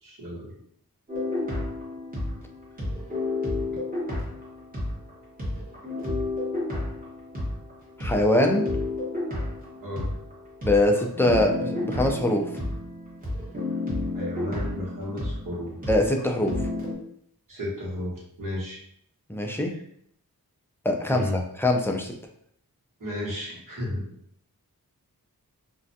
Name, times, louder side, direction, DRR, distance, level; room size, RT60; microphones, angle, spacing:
voice 1, 0.0-0.5 9.8-10.1 14.1-15.7 17.5-18.8 21.1-21.4 23.0-24.0, left 1 dB, 60° right, -6 dB, 1.2 m, -33 dB
sound 1, 1.1-5.1 5.4-17.0, left 2 dB, 20° right, 1.1 m, -31 dB
voice 2, 8.0-8.7 10.6-12.5 15.9-16.6 19.3-19.7 20.8-21.3 21.6-22.1, left 1 dB, 5° left, 1 dB, 0.3 m, -23 dB
2.4 x 2.2 x 2.6 m, 0.67 s
wide cardioid pair, 55°, 37 cm